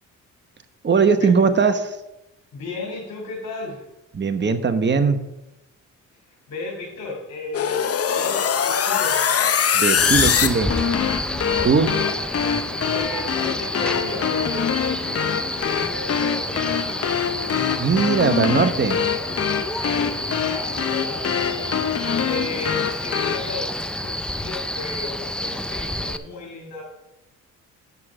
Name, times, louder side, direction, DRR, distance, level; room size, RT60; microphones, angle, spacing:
voice 1, 0.8-2.0 4.1-5.2 9.8-10.7 11.6-11.9 17.8-19.0, right 5 dB, 35° right, 8 dB, 1.1 m, -19 dB
voice 2, 2.5-3.8 6.5-9.5 11.4-12.1 12.9-17.1 18.3-18.6 19.7-21.6 22.2-26.8, left 2 dB, 70° left, -2 dB, 2.8 m, -34 dB
sound 1, 7.5-23.4, left 8 dB, 45° left, 0.9 m, -24 dB
Male speech man speaking, 10.0-26.2, left 1 dB, 5° left, 0.5 m, -29 dB
9.7 x 6.5 x 6.1 m, 0.94 s
cardioid pair, 85°, 33 cm